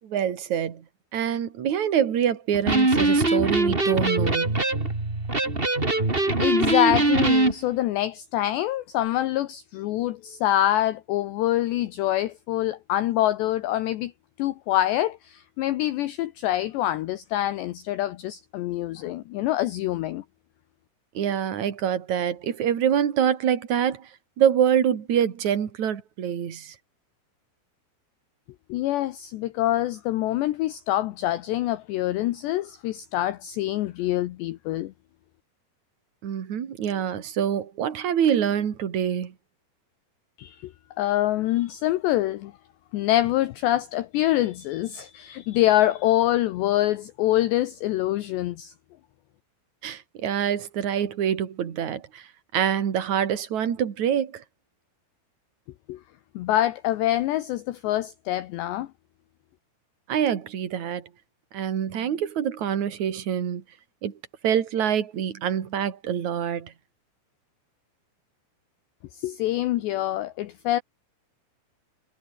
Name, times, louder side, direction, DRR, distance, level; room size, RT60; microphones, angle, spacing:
voice 1, 0.0-0.8 1.1-4.6 21.1-24.1 24.4-26.7 36.2-39.3 49.8-52.2 52.5-54.4 60.1-61.1 61.5-63.6 64.0-64.1 64.4-66.7, right 9 dB, 45° right, 3.0 m, -25 dB
Electric guitar, 2.5-7.5, right 2 dB, 15° right, 2.5 m, -22 dB
voice 2, 6.3-14.1 14.4-20.2 28.7-34.9 40.4-42.5 42.9-48.7 55.9-56.0 56.4-58.9 69.1-70.8, left 14 dB, 75° left, 2.8 m, -25 dB
omnidirectional pair, 5.8 m